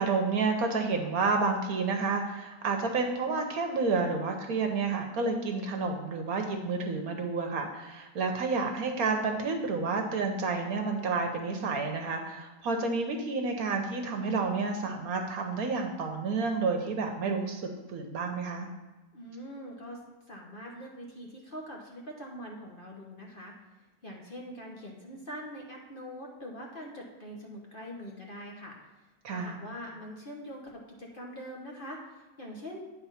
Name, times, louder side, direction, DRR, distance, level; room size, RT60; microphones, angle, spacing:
voice 1, 0.0-17.6 17.9-18.7 29.2-29.6, right 4 dB, 65° right, 4 dB, 1.2 m, -30 dB
voice 2, 19.1-20.0 20.3-23.5 24.0-28.8 29.3-32.8, equal, 35° left, -1 dB, 1.1 m, -43 dB
9.2 x 4.2 x 5.7 m, 1.2 s
omnidirectional pair, 1.8 m